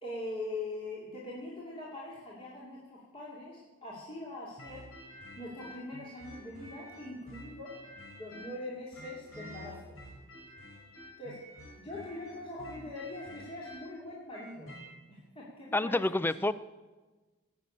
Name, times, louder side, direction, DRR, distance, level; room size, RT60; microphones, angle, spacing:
voice 1, 0.0-4.9 5.4-7.7 8.1-10.0 11.2-11.4 11.8-14.7 15.1-16.3, left 2 dB, 25° left, -6 dB, 2.5 m, -42 dB
sound 1, 4.6-8.6 8.9-14.9, equal, 80° left, 5.9 m, -49 dB
voice 2, 15.7-16.5, left 2 dB, 10° left, 16 dB, 0.4 m, -28 dB
19.0 x 6.8 x 8.4 m, 1.2 s
head